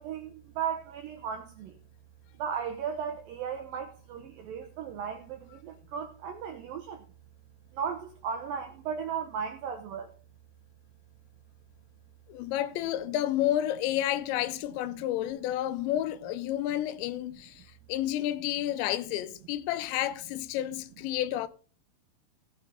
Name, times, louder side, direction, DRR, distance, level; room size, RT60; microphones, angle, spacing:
voice 1, 0.0-1.7 2.4-7.0 7.7-10.1, right 7 dB, 80° right, 2.0 m, -36 dB
voice 2, 12.3-21.5, left 13 dB, 85° left, 2.9 m, -30 dB
16.5 x 7.3 x 3.8 m
omnidirectional pair, 5.2 m